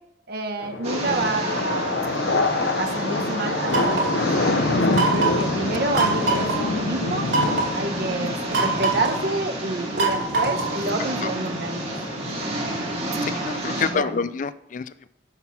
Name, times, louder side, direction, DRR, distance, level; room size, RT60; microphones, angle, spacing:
voice 1, 0.3-2.2 2.8-7.3 7.7-11.9 13.6-14.2, right 2 dB, 55° right, 4 dB, 1.1 m, -28 dB
sound 1, 0.6-13.6, left 3 dB, 75° left, 0.7 m, -27 dB
sound 2, 0.8-13.9, right 1 dB, 35° right, 2.1 m, -31 dB
sound 3, 3.7-4.2 4.9-5.5 5.9-6.6 7.3-7.8 8.5-9.2 10.0-10.8, right 3 dB, 85° right, 2.8 m, -23 dB
voice 2, 13.3-15.1, left 5 dB, 45° left, 15 dB, 0.4 m, -27 dB
12.5 x 4.2 x 5.7 m, 0.86 s
head